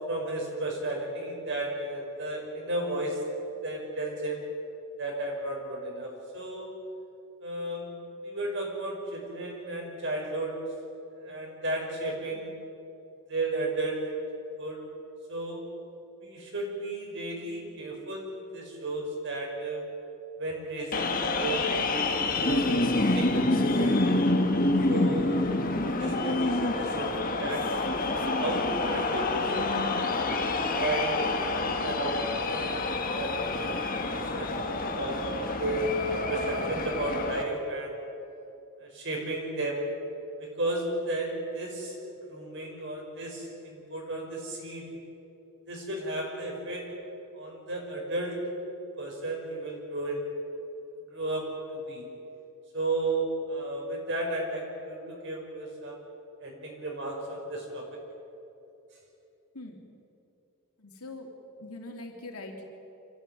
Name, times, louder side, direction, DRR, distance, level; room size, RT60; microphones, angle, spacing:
voice 1, 0.1-3.2 3.6-4.5 5.0-6.7 7.4-7.9 8.2-10.5 11.2-12.5 13.3-14.1 14.6-14.8 15.3-15.6 16.2-19.9 20.4-24.0 24.9-25.6 26.0-30.0 30.7-34.6 34.9-35.9 36.3-38.0 38.8-39.9 40.4-44.9 45.7-46.9 47.3-48.4 49.0-50.3 51.1-51.5 51.7-52.1 52.7-56.0 56.4-57.8, right 2 dB, 55° right, 0 dB, 5.6 m, -34 dB
sound 1, 20.9-37.4, left 2 dB, 40° left, 1.7 m, -27 dB
voice 2, 60.8-61.3 61.6-62.6, left 2 dB, 85° left, 1 dB, 3.3 m, -42 dB
25.5 x 15.0 x 9.4 m, 2.8 s
head